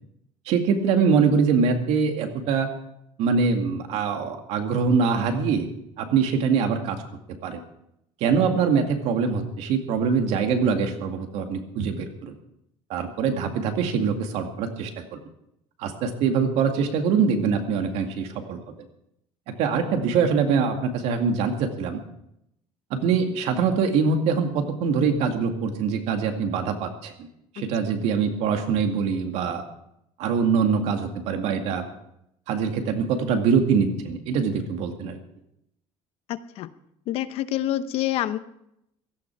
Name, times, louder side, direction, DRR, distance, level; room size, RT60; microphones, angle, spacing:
voice 1, 0.5-2.7 3.2-5.7 6.0-7.0 7.4-7.6 8.2-12.3 12.9-15.2 15.8-18.6 19.5-22.0 22.9-27.3 27.5-29.6 30.2-31.8 32.5-35.2, right 5 dB, 70° right, 5 dB, 2.2 m, -23 dB
voice 2, 27.6-27.9 36.3-36.7 37.1-38.4, left 13 dB, 60° left, 13 dB, 0.8 m, -28 dB
16.5 x 14.0 x 4.7 m, 0.78 s
cardioid pair, 150°, 11 cm